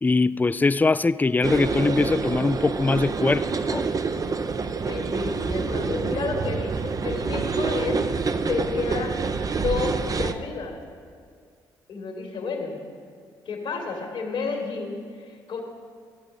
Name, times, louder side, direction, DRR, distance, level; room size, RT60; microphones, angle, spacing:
voice 1, 0.0-3.9, left 3 dB, 15° left, 0.3 m, -22 dB
sound 1, 1.4-10.3, right 4 dB, 35° right, 0.6 m, -27 dB
voice 2, 4.9-8.1 8.5-10.8 11.9-12.8 13.4-15.6, left 4 dB, 65° left, 1.8 m, -31 dB
13.0 x 8.3 x 5.3 m
hypercardioid pair, 50°, 10 cm